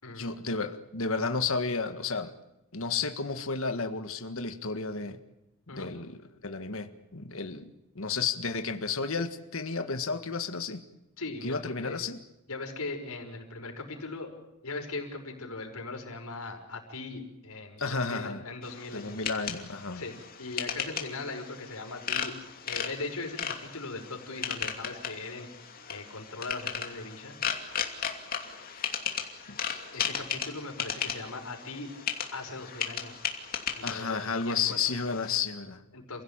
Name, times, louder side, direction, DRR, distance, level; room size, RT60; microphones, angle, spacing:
voice 1, 0.1-2.3 2.7-5.2 5.7-6.2 6.4-7.7 8.0-10.8 11.4-12.2 17.8-18.4 18.9-20.0 29.5-29.8 33.8-35.8, left 4 dB, 70° left, 7 dB, 1.7 m, -32 dB
voice 2, 11.2-12.0 12.5-14.3 14.6-19.2 19.9-22.4 22.6-25.5 25.9-27.4 29.9-31.9 32.3-33.2 33.7-34.8 35.9-36.2, left 3 dB, 85° left, 3 dB, 5.6 m, -39 dB
sound 1, 18.6-35.4, left 7 dB, 40° left, 2.8 m, -36 dB
29.0 x 16.5 x 9.0 m, 0.94 s
head